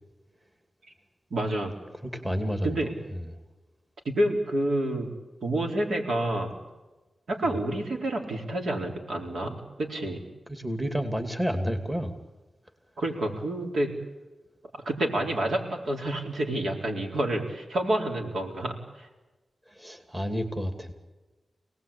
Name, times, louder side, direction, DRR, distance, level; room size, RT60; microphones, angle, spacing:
voice 1, 1.3-1.7 2.6-2.9 4.0-5.1 5.4-6.6 7.3-10.2 13.0-13.9 14.7-19.1, right 1 dB, 75° right, 1 dB, 4.3 m, -28 dB
voice 2, 2.0-3.3 10.5-12.1 19.7-20.9, equal, 15° right, 5 dB, 2.8 m, -30 dB
27.5 x 19.0 x 8.7 m, 1.2 s
wide cardioid pair, 110°, 0 cm